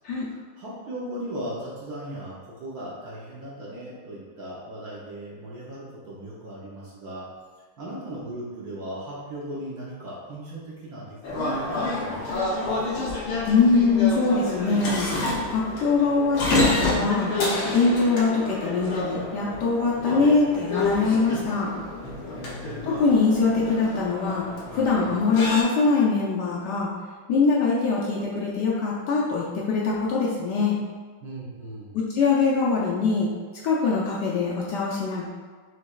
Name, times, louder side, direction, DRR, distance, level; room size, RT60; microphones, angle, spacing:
voice 1, 0.1-7.3 7.8-12.8 22.4-23.0 31.2-31.9, right 1 dB, 60° right, -6 dB, 1.1 m, -38 dB
sound 1, 11.2-25.6, left 2 dB, 85° left, 1.8 m, -29 dB
voice 2, 13.5-15.1 15.5-17.3 17.7-21.7 22.9-24.4 24.7-26.9 27.3-30.8 31.9-33.3 33.6-35.3, left 4 dB, 70° left, -5 dB, 1.1 m, -23 dB
6.0 x 3.3 x 2.3 m, 1.5 s
omnidirectional pair, 2.3 m